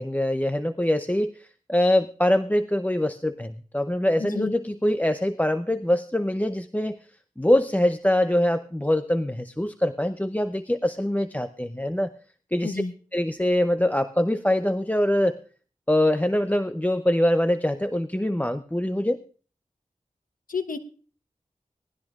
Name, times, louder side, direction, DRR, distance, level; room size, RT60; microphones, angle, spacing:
voice 1, 0.0-7.0 7.4-12.1 12.5-12.8 13.1-15.4 15.9-19.2, left 1 dB, 10° left, 10 dB, 0.6 m, -24 dB
voice 2, 4.2-4.5 12.6-12.9 20.5-20.8, left 4 dB, 80° left, 7 dB, 1.1 m, -30 dB
18.5 x 13.5 x 2.4 m, 0.40 s
cardioid pair, 40°, 14 cm